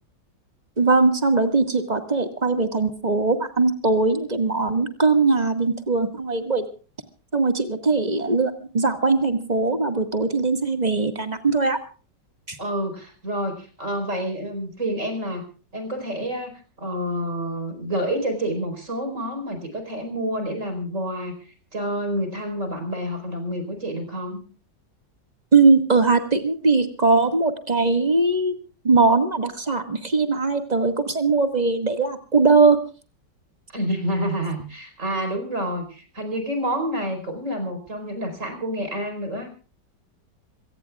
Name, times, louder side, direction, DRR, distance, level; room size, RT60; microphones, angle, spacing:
voice 1, 0.8-6.7 7.3-11.8 12.5-12.6 25.5-28.5 28.8-32.8, right 3 dB, 25° right, 7 dB, 1.9 m, -20 dB
voice 2, 12.6-15.5 15.7-21.3 21.7-24.4 33.7-39.5, equal, 45° right, 7 dB, 5.0 m, -28 dB
26.5 x 17.5 x 2.4 m, 0.37 s
omnidirectional pair, 1.9 m